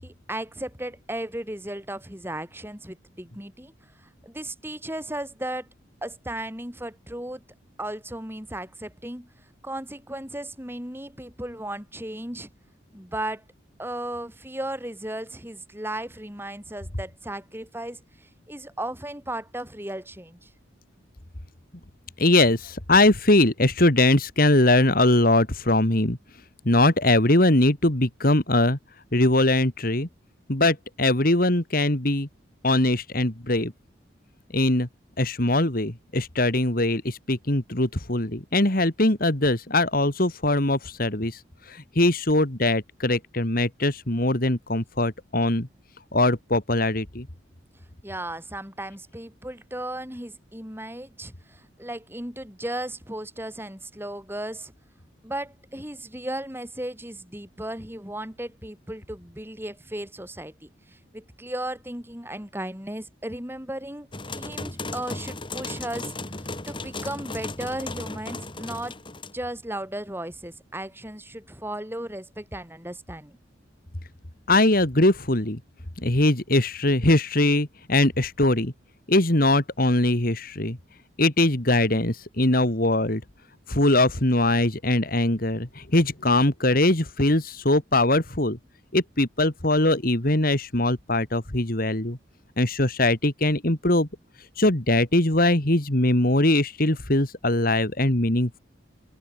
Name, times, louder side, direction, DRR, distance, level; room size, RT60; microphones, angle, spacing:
voice 1, 0.0-3.7 4.2-5.7 6.0-7.4 7.8-9.3 9.6-12.5 12.9-13.4 13.8-20.5 48.0-54.7 55.2-64.1 64.3-66.1 66.7-69.0 69.3-73.4, right 1 dB, 10° right, 7.4 m, -35 dB
voice 2, 22.2-26.2 26.7-28.8 29.1-30.1 30.5-32.3 32.6-33.7 34.5-34.9 35.2-41.4 41.7-45.7 46.1-47.3 74.5-75.6 76.0-78.7 79.1-80.8 81.2-83.2 83.7-88.6 88.9-92.2 92.6-94.1 94.6-98.6, left 2 dB, 50° left, 2.6 m, -21 dB
sound 1, 64.1-69.3, left 2 dB, 25° left, 3.2 m, -35 dB
open air
head